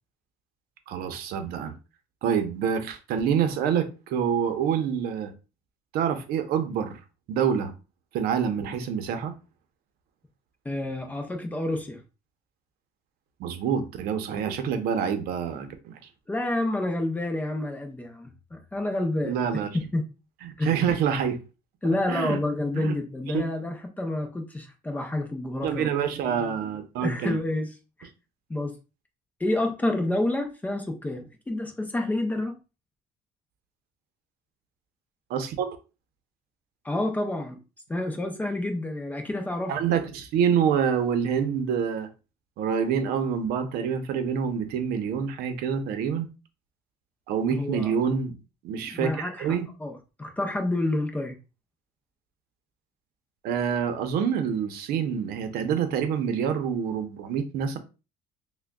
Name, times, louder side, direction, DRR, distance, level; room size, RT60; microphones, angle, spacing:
voice 1, 0.9-1.7 2.2-5.3 5.9-7.0 7.3-7.7 8.1-9.3 13.4-16.0 19.2-19.7 20.4-21.4 22.1-22.4 22.7-22.9 23.3-23.4 25.6-27.4 35.3-35.7 39.7-42.1 42.6-46.3 47.3-48.4 48.6-49.7 53.4-57.8, right 7 dB, 65° right, 0.7 m, -26 dB
voice 2, 10.6-12.0 16.3-19.4 19.9-20.1 20.6-20.7 21.8-25.9 27.0-27.7 28.0-28.1 28.5-28.8 29.4-32.6 36.8-37.6 37.9-39.7 47.5-47.9 48.8-51.4, left 1 dB, 10° left, 0.5 m, -29 dB
6.0 x 2.2 x 2.2 m
cardioid pair, 165°, 17 cm